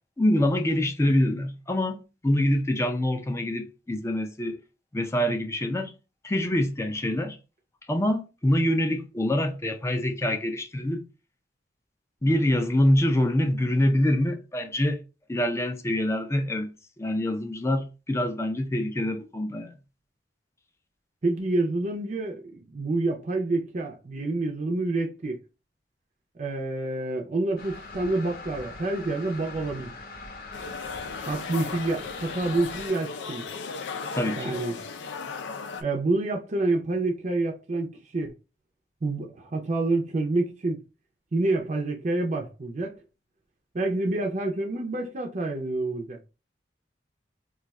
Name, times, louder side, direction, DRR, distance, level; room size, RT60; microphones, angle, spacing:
voice 1, 0.2-4.6 4.9-5.9 6.2-7.4 7.9-11.0 12.2-15.0 15.3-16.7 17.0-19.7 34.1-34.6, left 1 dB, 15° left, 0.4 m, -25 dB
voice 2, 21.2-25.4 26.4-29.9 31.3-33.4 34.4-34.8 35.8-37.9 38.1-38.3 39.0-40.8 41.3-43.0 43.7-46.2, right 2 dB, 40° right, 0.5 m, -28 dB
sound 1, 27.6-32.9, left 3 dB, 55° left, 0.7 m, -42 dB
sound 2, 30.5-35.8, left 5 dB, 90° left, 0.5 m, -36 dB
2.4 x 2.3 x 4.0 m
head